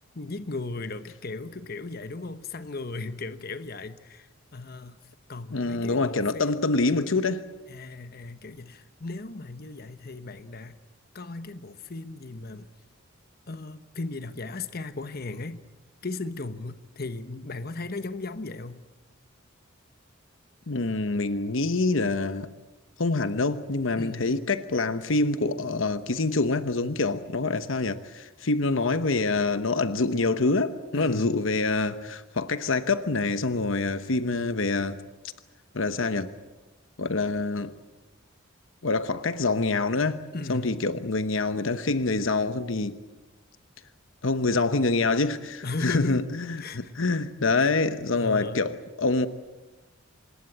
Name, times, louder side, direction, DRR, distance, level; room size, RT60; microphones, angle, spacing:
voice 1, 0.1-5.0 5.3-6.6 7.7-10.8 11.1-12.7 13.5-15.6 16.0-18.8 24.0-24.3 30.9-31.4 40.3-40.9 45.6-46.3 46.6-46.9 47.5-47.7 48.1-48.7, left 3 dB, 50° left, 1.1 m, -36 dB
voice 2, 5.5-7.4 20.7-22.5 23.0-35.0 35.7-36.3 37.0-37.7 38.8-40.2 40.5-43.0 44.2-49.3, left 3 dB, 70° left, 1.0 m, -26 dB
26.0 x 20.5 x 8.6 m
head